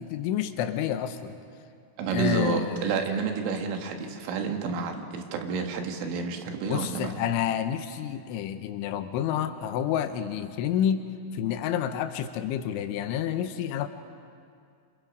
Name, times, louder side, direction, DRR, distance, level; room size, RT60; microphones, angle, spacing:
voice 1, 0.0-1.4 2.1-3.3 6.6-13.9, left 9 dB, 80° left, 9 dB, 3.4 m, -29 dB
voice 2, 2.0-7.1, right 5 dB, 80° right, 4 dB, 4.0 m, -30 dB
26.5 x 26.5 x 5.3 m, 2.3 s
omnidirectional pair, 5.5 m